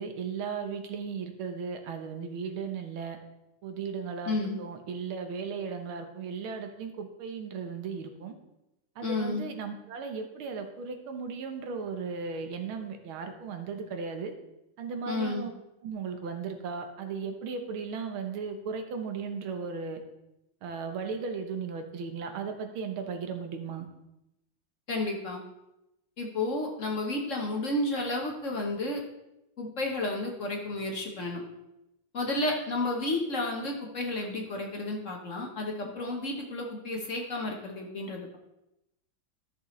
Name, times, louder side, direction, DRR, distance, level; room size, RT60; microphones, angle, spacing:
voice 1, 0.0-3.2 3.6-8.3 9.0-14.3 14.8-15.5 15.8-20.0 20.6-23.9, right 5 dB, 90° right, 6 dB, 1.9 m, -36 dB
voice 2, 4.2-4.6 9.0-9.4 15.1-15.5 24.9-25.4 26.2-29.0 29.6-31.4 32.1-38.4, left 2 dB, 45° left, 0 dB, 1.3 m, -32 dB
13.0 x 6.8 x 3.2 m, 0.90 s
omnidirectional pair, 2.2 m